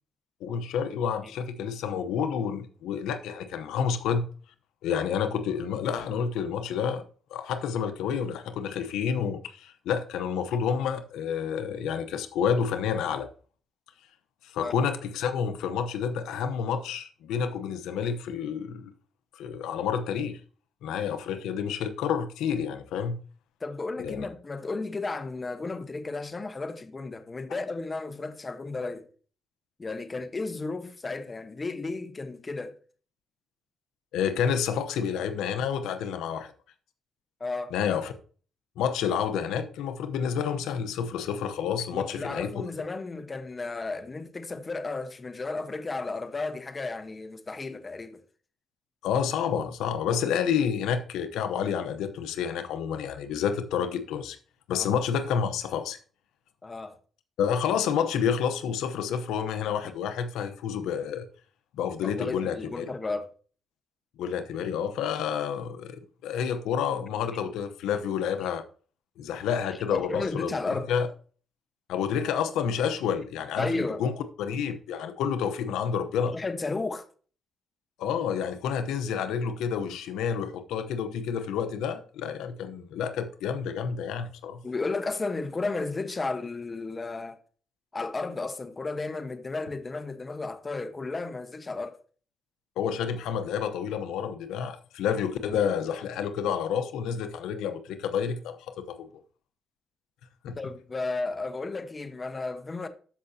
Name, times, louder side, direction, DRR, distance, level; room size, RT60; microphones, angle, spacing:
voice 1, 0.4-4.3 4.8-7.0 7.3-13.3 14.4-18.9 19.3-20.4 20.8-23.2 24.0-24.3 34.1-36.5 37.7-38.1 38.8-42.6 49.0-54.4 54.7-56.0 57.4-61.3 61.8-62.9 64.2-68.6 69.2-70.6 70.9-71.1 71.9-74.1 74.4-76.3 78.0-84.6 92.8-99.1 100.4-100.6, left 7 dB, 90° left, 0.8 m, -29 dB
voice 2, 23.6-29.1 29.8-32.8 37.4-37.7 41.9-48.2 54.7-55.0 56.6-57.0 62.0-63.3 69.7-70.9 73.6-74.0 76.2-77.1 84.6-87.4 87.9-92.0 100.6-102.9, left 3 dB, 25° left, 1.1 m, -33 dB
13.0 x 5.7 x 2.8 m
cardioid pair, 90°, 0 cm